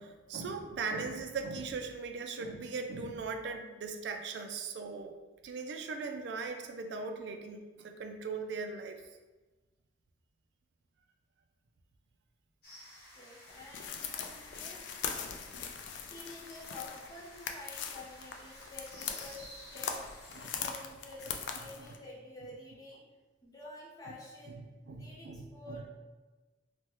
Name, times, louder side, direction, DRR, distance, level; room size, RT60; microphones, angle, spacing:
voice 1, 0.0-5.1 5.4-9.0 20.4-20.5 21.8-21.9 24.9-25.8, right 4 dB, 65° right, 5 dB, 0.3 m, -39 dB
sound 1, 12.6-20.5, left 1 dB, 55° left, 0.9 m, -54 dB
voice 2, 13.1-14.8 16.1-20.0 20.3-23.0 23.4-24.6 24.9-25.8, left 2 dB, 20° left, -5 dB, 0.6 m, -49 dB
sound 2, 13.5-22.0, left 7 dB, 75° left, 0.3 m, -41 dB
3.3 x 2.1 x 2.9 m, 1.2 s
head